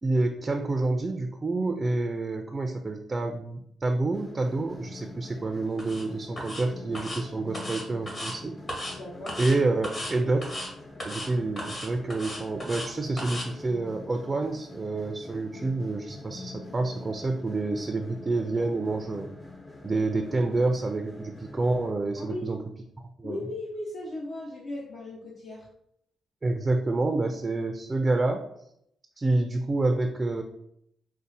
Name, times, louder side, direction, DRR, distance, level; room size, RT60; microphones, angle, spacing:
voice 1, 0.0-8.6 9.4-10.6 11.0-19.3 19.8-22.6 23.0-23.4 26.4-28.4 29.2-30.4, right 2 dB, 30° right, 4 dB, 0.4 m, -28 dB
sound 1, 4.1-21.9, left 2 dB, 25° left, 0.5 m, -45 dB
sound 2, 5.8-6.0 6.4-6.6 6.9-7.2 7.5-8.3 8.7-9.0 9.3-9.6 9.8-10.1 10.4-10.7 11.0-11.3 11.6-12.9 13.2-13.5, left 1 dB, 40° left, 1.1 m, -35 dB
voice 2, 8.9-9.4 22.2-22.5 23.2-25.7, left 2 dB, 65° left, -4 dB, 0.7 m, -37 dB
5.2 x 2.1 x 2.6 m, 0.73 s
cardioid pair, 85°, 0 cm